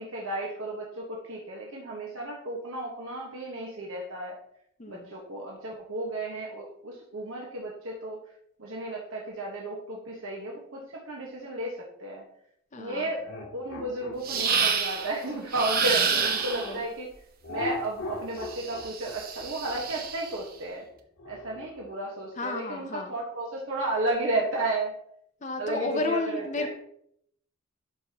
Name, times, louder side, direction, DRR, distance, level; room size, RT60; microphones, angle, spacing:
voice 1, 0.0-4.4 4.9-8.2 8.6-12.2 12.8-13.2 13.5-17.1 17.5-20.8 21.3-24.9 25.6-26.7, right 2 dB, 60° right, -2 dB, 1.3 m, -33 dB
voice 2, 4.8-5.1 12.7-13.1 16.6-16.8 22.4-23.1 25.4-26.7, left 2 dB, 35° left, 4 dB, 0.6 m, -32 dB
sound 1, 13.2-16.8 17.4-21.9, left 3 dB, 70° left, 2.8 m, -40 dB
sound 2, 14.2-15.1 15.5-16.8 18.4-20.3, right 6 dB, 40° right, 0.8 m, -28 dB
11.5 x 5.5 x 2.9 m, 0.70 s
head